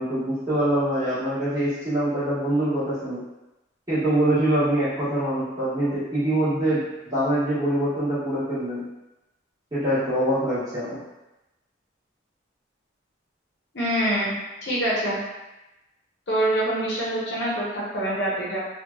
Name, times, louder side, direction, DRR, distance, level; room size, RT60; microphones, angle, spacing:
voice 1, 0.0-3.2 3.9-6.8 7.1-8.8 9.7-11.0, right 1 dB, 20° right, -13 dB, 1.4 m, -24 dB
voice 2, 13.7-14.3 14.6-15.2 16.3-18.6, right 1 dB, 60° left, -6 dB, 0.8 m, -25 dB
3.1 x 2.3 x 2.3 m, 0.98 s
head